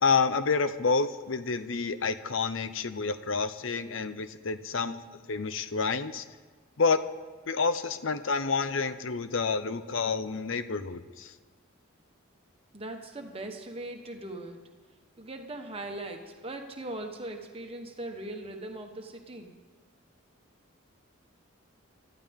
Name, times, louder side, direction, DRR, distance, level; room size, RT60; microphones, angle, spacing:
voice 1, 0.0-5.0 5.3-6.2 6.8-7.0 7.5-11.3, left 4 dB, 65° left, 12 dB, 0.7 m, -28 dB
voice 2, 12.7-14.6 15.2-19.5, right 2 dB, 25° right, 3 dB, 1.3 m, -40 dB
23.5 x 14.0 x 3.6 m, 1.4 s
head